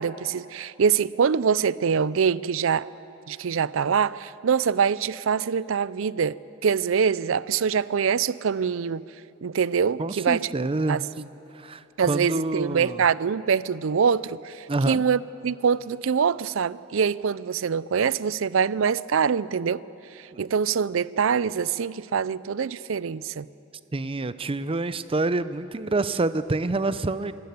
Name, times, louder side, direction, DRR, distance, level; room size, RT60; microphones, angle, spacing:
voice 1, 0.0-2.9 3.3-9.0 9.4-10.5 10.9-11.0 12.0-19.8 20.2-23.5, right 6 dB, 70° right, 19 dB, 0.5 m, -24 dB
voice 2, 10.0-11.0 11.5-13.0 14.7-15.0 20.3-20.4 23.9-27.3, right 2 dB, 25° right, 13 dB, 0.6 m, -27 dB
26.0 x 13.5 x 9.5 m, 2.9 s
head